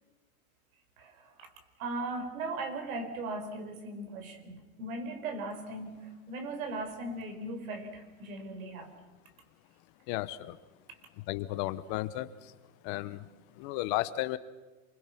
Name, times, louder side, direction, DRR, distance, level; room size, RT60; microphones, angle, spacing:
voice 1, 1.0-1.5 1.8-8.9 10.9-11.0, right 2 dB, 75° right, 6 dB, 4.7 m, -38 dB
voice 2, 10.1-10.6 11.3-12.5 12.8-13.3 13.6-14.4, left 16 dB, 40° left, 14 dB, 1.0 m, -34 dB
28.0 x 22.5 x 5.9 m, 1.2 s
supercardioid pair, 145°, 42 cm